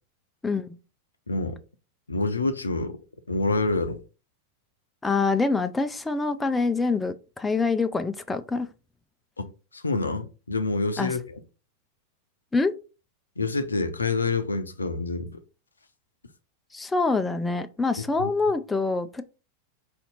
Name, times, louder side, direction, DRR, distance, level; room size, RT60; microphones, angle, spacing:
voice 1, 0.4-0.8 5.0-8.7 11.0-11.1 12.5-12.7 16.7-19.2, left 3 dB, 10° left, 0.4 m, -25 dB
voice 2, 1.3-1.6 2.1-3.0 3.3-4.0 9.7-11.4 13.4-15.4 18.2-18.3, left 3 dB, 75° left, 0.5 m, -27 dB
4.2 x 2.8 x 3.9 m
figure-of-eight pair, 90°, 0 cm